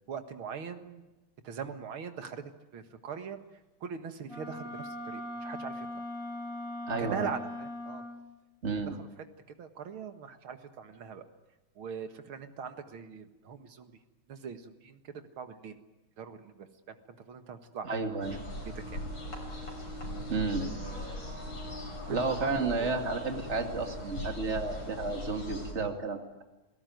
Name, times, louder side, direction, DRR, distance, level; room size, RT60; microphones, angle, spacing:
voice 1, 0.1-1.0 1.4-2.4 2.7-3.4 3.8-5.9 7.0-8.0 8.9-9.1 9.6-11.2 11.8-13.9 14.3-15.8 16.2-18.0 18.3-19.0 20.6-21.3 22.1-23.1 24.7-24.8, right 7 dB, 85° right, 8 dB, 2.5 m, -41 dB
Wind instrument woodwind instrument, 4.3-8.3, left 1 dB, 40° left, 3.0 m, -40 dB
voice 2, 6.9-7.3 8.6-9.0 17.8-18.4 20.3-20.7 22.1-26.4, right 3 dB, 35° right, 5 dB, 2.6 m, -32 dB
sound 1, 18.2-25.7, left 1 dB, 65° left, 6.9 m, -40 dB
29.0 x 18.0 x 9.4 m, 1.1 s
omnidirectional pair, 2.2 m